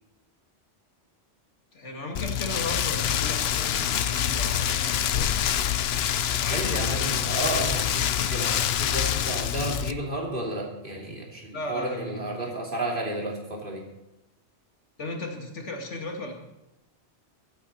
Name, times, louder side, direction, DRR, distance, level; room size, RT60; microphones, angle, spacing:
voice 1, 1.7-5.3 6.4-7.2 11.5-12.5 15.0-16.3, left 1 dB, 80° left, 2 dB, 2.4 m, -36 dB
Rain, 2.2-9.9, left 9 dB, 65° left, 0.8 m, -26 dB
voice 2, 6.5-13.8, right 2 dB, 45° right, -2 dB, 3.4 m, -32 dB
22.0 x 9.1 x 4.4 m, 0.96 s
omnidirectional pair, 1.2 m